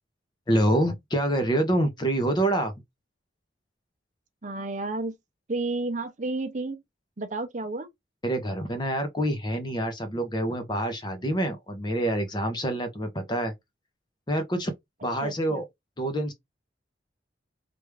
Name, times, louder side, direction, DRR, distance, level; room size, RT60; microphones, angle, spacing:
voice 1, 0.5-2.7 8.2-13.5 14.3-14.7 15.0-15.6 16.0-16.3, right 1 dB, 25° left, 0.7 m, -26 dB
voice 2, 4.4-5.1 5.5-6.8 7.2-7.9 15.2-15.6, right 2 dB, 40° right, 0.6 m, -31 dB
3.4 x 2.6 x 3.1 m
head